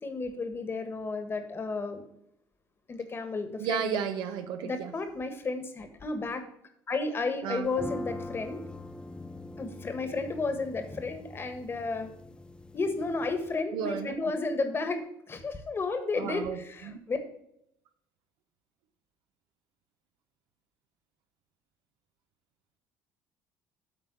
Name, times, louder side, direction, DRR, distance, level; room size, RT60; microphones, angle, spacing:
voice 1, 0.0-2.0 2.9-3.9 4.6-6.4 6.9-8.6 9.6-12.1 12.7-17.2, left 3 dB, 30° left, 8 dB, 1.4 m, -32 dB
voice 2, 3.6-4.9 7.4-7.7 13.7-14.3 16.1-17.0, right 8 dB, 75° right, 8 dB, 0.9 m, -33 dB
sound 1, 7.7-13.6, left 2 dB, 10° left, 0.6 m, -42 dB
8.6 x 3.8 x 6.8 m, 0.74 s
supercardioid pair, 95°, 8 cm